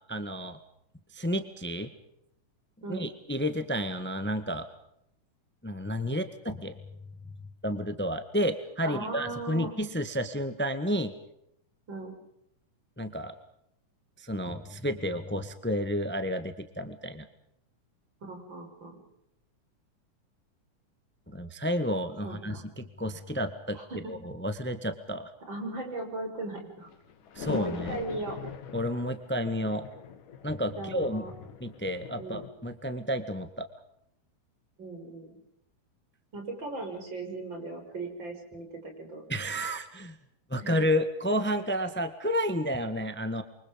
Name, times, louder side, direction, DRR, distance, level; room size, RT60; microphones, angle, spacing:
voice 1, 0.1-0.6 1.1-1.9 2.9-4.7 5.6-6.8 7.6-11.1 13.0-13.3 14.2-17.3 21.3-23.8 24.1-25.3 27.3-28.0 28.7-29.9 30.4-31.2 31.6-33.7 39.3-40.2 40.5-43.4, equal, 15° left, 10 dB, 0.3 m, -31 dB
voice 2, 8.8-9.8 11.9-12.1 18.2-19.0 22.2-22.6 23.7-24.1 25.5-26.9 27.6-28.4 30.8-31.3 32.2-32.5 34.8-35.4 36.3-39.2 40.6-40.7, right 2 dB, 35° right, 3 dB, 6.8 m, -38 dB
sound 1, 26.9-32.5, left 8 dB, 85° left, 3.4 m, -42 dB
28.5 x 25.0 x 5.3 m, 0.75 s
omnidirectional pair, 3.6 m